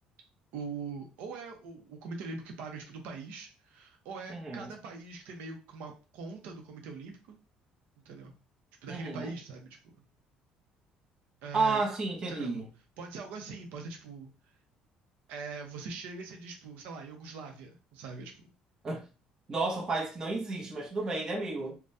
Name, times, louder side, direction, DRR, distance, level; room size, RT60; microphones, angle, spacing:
voice 1, 0.5-7.4 8.0-8.3 8.8-10.0 11.4-11.9 12.3-12.6 13.0-14.3 15.3-18.5, right 4 dB, 85° right, 0.7 m, -42 dB
voice 2, 4.3-4.7 8.9-9.3 11.5-12.7 18.8-19.0 19.5-21.8, right 3 dB, 25° right, 0.7 m, -32 dB
3.4 x 2.2 x 2.6 m
cardioid pair, 160°, 3 cm